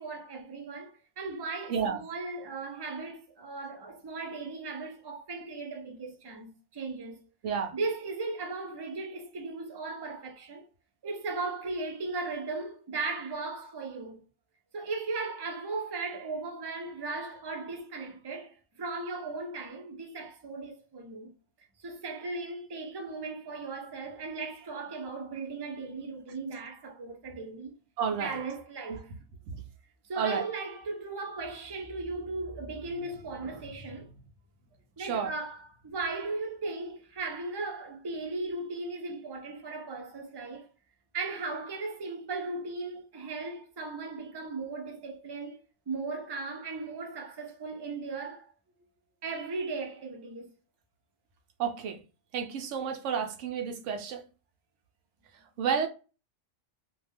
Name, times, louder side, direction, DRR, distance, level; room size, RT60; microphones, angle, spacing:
voice 1, 0.0-7.2 7.7-10.7 11.0-14.2 14.7-21.3 21.8-27.7 28.2-29.1 30.0-34.1 35.0-40.7 41.1-45.6 45.9-48.5 49.2-50.5, right 3 dB, 35° right, 0.4 m, -37 dB
voice 2, 1.7-2.0 7.4-7.7 28.0-28.4 28.9-29.0 29.5-29.6 30.2-30.4 35.0-35.3 51.6-52.0 52.3-54.2 55.6-55.9, right 7 dB, 85° right, 0.9 m, -31 dB
2.4 x 2.1 x 3.3 m
omnidirectional pair, 1.2 m